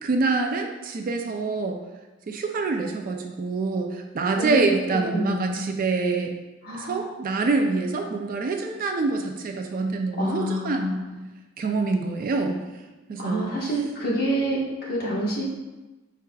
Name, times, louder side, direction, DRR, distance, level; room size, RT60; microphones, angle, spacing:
voice 1, 0.0-1.8 2.3-6.3 6.7-11.0 11.6-12.6 13.1-13.5, right 3 dB, 40° right, 4 dB, 0.3 m, -26 dB
voice 2, 4.4-4.8 5.1-5.5 6.6-7.0 10.2-11.1 13.2-15.4, equal, 45° left, -6 dB, 1.2 m, -27 dB
4.6 x 4.6 x 2.3 m, 1.1 s
head